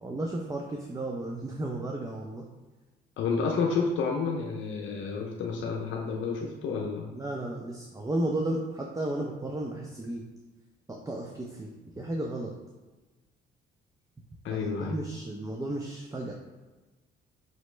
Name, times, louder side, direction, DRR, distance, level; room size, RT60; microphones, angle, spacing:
voice 1, 0.0-2.5 7.1-10.2 10.9-11.7 11.9-12.5 14.5-16.3, right 1 dB, 15° right, 0 dB, 0.5 m, -33 dB
voice 2, 3.2-7.1 14.4-15.0, left 5 dB, 75° left, 0 dB, 0.6 m, -30 dB
5.4 x 3.0 x 3.2 m, 1.2 s
cardioid pair, 90°, 20 cm